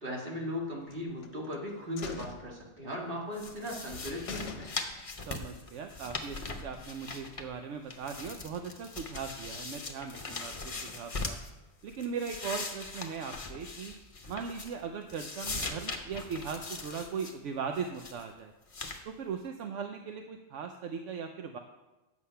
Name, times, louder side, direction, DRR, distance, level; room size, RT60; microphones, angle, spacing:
voice 1, 0.0-4.7, left 1 dB, 45° right, -2 dB, 2.0 m, -37 dB
sound 1, 0.9-1.6 2.0-3.2 3.6-3.7 4.0-4.1 4.3-5.2 5.5-5.6, left 5 dB, 60° left, 1.0 m, -44 dB
sound 2, 3.3-7.6 7.9-11.5 11.9-14.8 15.1-17.3 17.7-18.2 18.7-19.0, left 3 dB, 30° left, 0.8 m, -40 dB
voice 2, 5.3-11.4 11.8-13.9 14.3-18.5 19.1-21.6, right 6 dB, 75° right, 5 dB, 1.0 m, -39 dB
8.4 x 7.2 x 5.6 m, 1.1 s
omnidirectional pair, 1.3 m